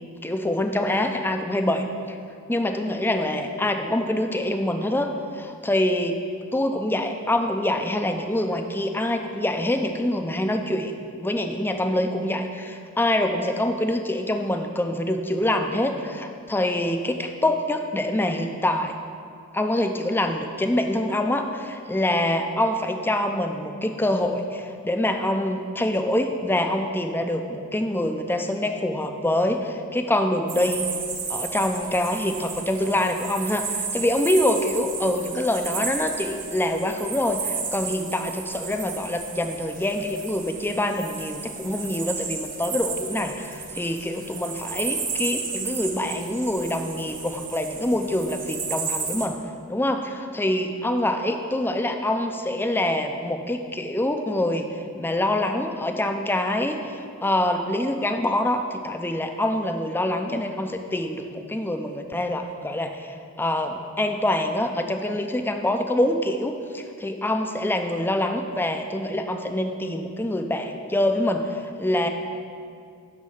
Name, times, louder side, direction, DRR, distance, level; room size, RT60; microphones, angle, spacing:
voice 1, 0.2-2.2 2.5-6.2 6.5-18.9 19.5-30.8 31.3-49.4 49.7-54.7 55.0-72.1, left 1 dB, 10° left, 5 dB, 0.5 m, -25 dB
sound 1, 30.5-49.3, right 5 dB, 35° right, 1.0 m, -33 dB
11.0 x 4.1 x 6.5 m, 2.3 s
head